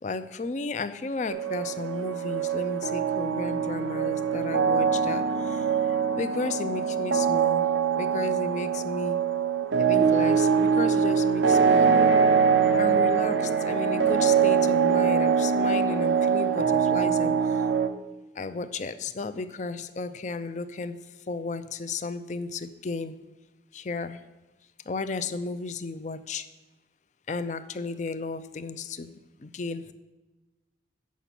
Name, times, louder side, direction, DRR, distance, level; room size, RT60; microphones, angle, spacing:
voice 1, 0.0-7.7 8.0-9.2 9.8-12.1 12.8-17.6 18.3-21.0 21.3-23.2 23.7-24.2 24.9-26.5 27.3-29.1 29.4-29.9, left 4 dB, 40° left, 12 dB, 0.4 m, -34 dB
sound 1, 1.3-17.9, right 6 dB, 85° right, 0.6 m, -23 dB
8.4 x 6.0 x 5.8 m, 1.1 s
head